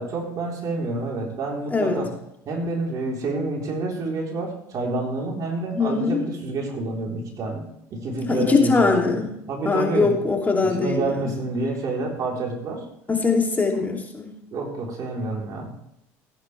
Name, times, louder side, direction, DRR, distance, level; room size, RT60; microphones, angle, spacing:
voice 1, 0.0-2.1 2.5-7.6 7.9-9.2 9.5-10.1 10.8-12.8 14.5-15.7, right 3 dB, 50° right, -1 dB, 3.9 m, -28 dB
voice 2, 5.7-6.2 8.3-9.3 9.6-11.3 13.1-14.3, left 4 dB, 20° left, 0 dB, 2.8 m, -22 dB
16.0 x 9.5 x 3.4 m, 0.78 s
supercardioid pair, 80°, 8 cm